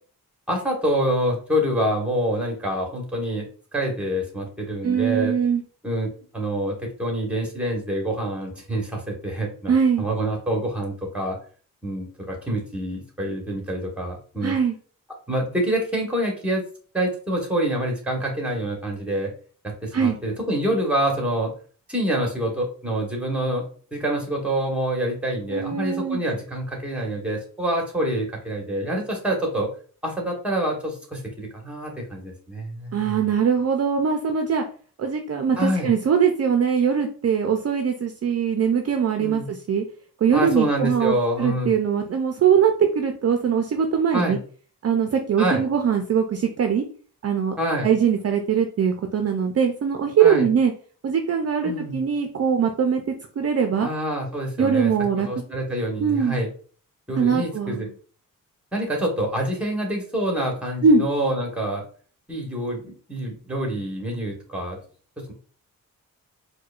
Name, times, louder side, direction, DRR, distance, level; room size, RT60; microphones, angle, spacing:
voice 1, 0.5-5.4 5.8-11.4 11.8-14.5 15.3-16.6 16.9-19.3 19.8-21.5 21.9-23.6 23.9-29.7 30.0-33.2 35.6-35.9 39.2-39.5 40.3-41.7 44.1-44.4 45.4-45.6 47.6-47.9 50.2-50.5 51.6-52.0 53.8-54.9 55.3-56.5 57.1-57.9 58.7-61.8 62.3-64.8 65.2-65.3, right 1 dB, 5° right, 1 dB, 1.2 m, -26 dB
voice 2, 4.8-5.6 9.7-10.0 14.4-14.7 19.9-20.2 25.5-26.2 32.9-34.6 35.0-39.8 40.2-44.4 44.8-46.8 47.2-47.5 47.8-50.7 51.0-53.0 53.4-53.9 54.6-55.3 56.0-56.4 57.2-57.9 60.8-61.0, right 7 dB, 45° right, 4 dB, 0.5 m, -21 dB
4.6 x 2.2 x 2.4 m, 0.42 s
cardioid pair, 100°, 34 cm